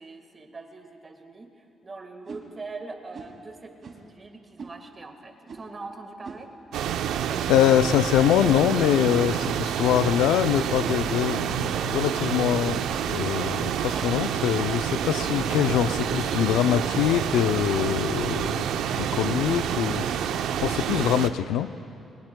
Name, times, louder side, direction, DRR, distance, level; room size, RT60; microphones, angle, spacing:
voice 1, 0.0-6.5, right 3 dB, 30° right, 5 dB, 1.6 m, -42 dB
sound 1, 2.2-2.4 3.1-3.4 3.8-4.1 4.6-4.8 5.5-5.8 6.2-6.4 6.7-6.9 7.2-7.6 8.0-8.9 9.4-9.7 10.0-10.3 10.8-11.2 11.7-12.1 12.9-13.2 13.9-14.4 15.2-15.5 16.0-16.3 17.0-17.4 17.7-18.1 18.5-18.8, right 4 dB, 50° right, 2.3 m, -42 dB
sound 2, 6.7-21.3, right 9 dB, 85° right, 0.5 m, -28 dB
voice 2, 7.5-20.0 20.6-21.7, left 10 dB, 90° left, 13 dB, 0.4 m, -24 dB
22.0 x 19.5 x 2.2 m, 2.7 s
cardioid pair, 90°, 0 cm